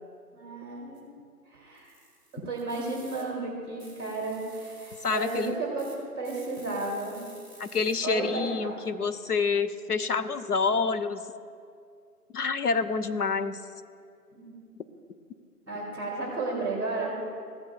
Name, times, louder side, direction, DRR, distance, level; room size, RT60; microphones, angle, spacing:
voice 1, 0.3-1.0 1.5-1.9 2.3-7.2 8.0-8.8 14.3-14.5 15.7-17.1, right 3 dB, 15° right, -4 dB, 2.2 m, -33 dB
sound 1, 1.0-1.1 1.7-3.2 3.8-5.5 5.8-5.9 6.2-7.9, right 1 dB, 15° left, 2.4 m, -52 dB
voice 2, 5.0-5.5 7.6-11.2 12.3-13.6, left 5 dB, 70° left, 11 dB, 0.7 m, -28 dB
16.5 x 8.8 x 2.3 m, 2.4 s
figure-of-eight pair, 160°, 47 cm